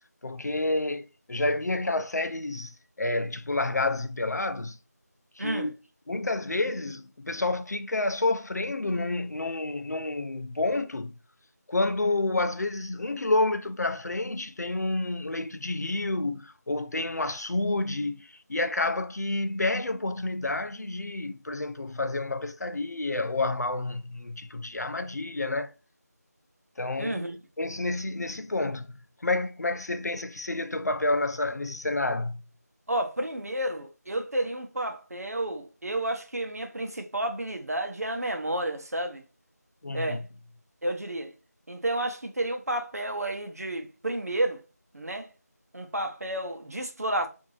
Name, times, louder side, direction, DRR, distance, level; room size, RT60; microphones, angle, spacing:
voice 1, 0.2-4.8 5.4-5.8 6.1-11.1 11.7-25.7 26.8-27.2 27.6-32.4 39.8-40.3, left 2 dB, 70° left, 0.5 m, -29 dB
voice 2, 5.4-5.7 27.0-27.4 32.9-39.2 39.9-40.2 40.8-41.3 41.7-44.6 44.9-45.3 45.7-47.3, right 1 dB, 60° right, 0.8 m, -31 dB
3.8 x 2.6 x 2.9 m
figure-of-eight pair, 170°, 9 cm